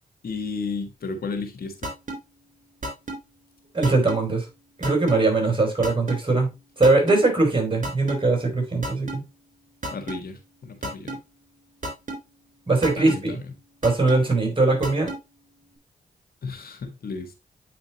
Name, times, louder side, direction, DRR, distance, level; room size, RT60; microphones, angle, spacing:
voice 1, 0.2-1.9 9.9-11.2 12.9-13.5 16.4-17.3, left 4 dB, 70° left, 1.6 m, -33 dB
sound 1, 1.8-2.2 2.8-3.2 3.8-4.2 4.8-5.2 5.8-6.2 6.8-7.2 7.8-8.2 8.8-9.2 9.8-10.2 10.8-11.2 11.8-12.2 12.8-13.2 13.8-14.2 14.8-15.2, right 1 dB, 50° right, 3.7 m, -30 dB
voice 2, 3.7-4.4 4.8-6.5 6.8-9.2 12.7-13.4 13.8-15.1, right 3 dB, 30° right, 4.7 m, -21 dB
8.8 x 5.1 x 3.0 m
supercardioid pair, 45°, 16 cm